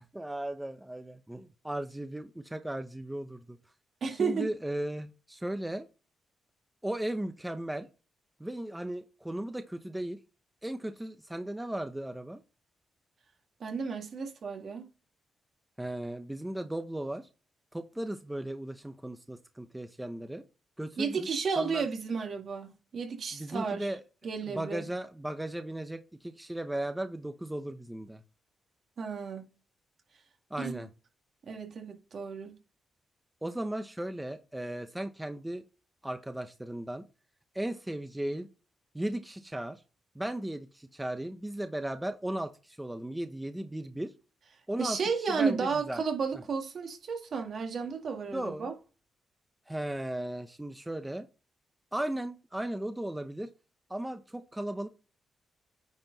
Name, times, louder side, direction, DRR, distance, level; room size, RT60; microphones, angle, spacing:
voice 1, 0.0-3.6 4.2-5.9 6.8-7.9 8.4-10.2 10.6-12.4 15.8-17.3 17.7-20.4 20.8-21.3 21.6-21.8 23.3-24.0 24.5-28.2 30.5-30.9 33.4-35.6 36.0-37.1 37.5-38.5 38.9-39.8 40.1-44.1 44.7-45.0 45.4-46.0 48.3-48.7 49.7-51.3 51.9-53.5 53.9-54.9, right 1 dB, 10° right, 0.8 m, -36 dB
voice 2, 4.0-4.5 13.6-14.9 21.0-23.9 24.2-24.8 29.0-29.5 30.6-30.8 31.5-32.6 44.8-48.7, right 5 dB, 60° right, 2.1 m, -33 dB
9.6 x 4.5 x 4.0 m
cardioid pair, 85°, 0 cm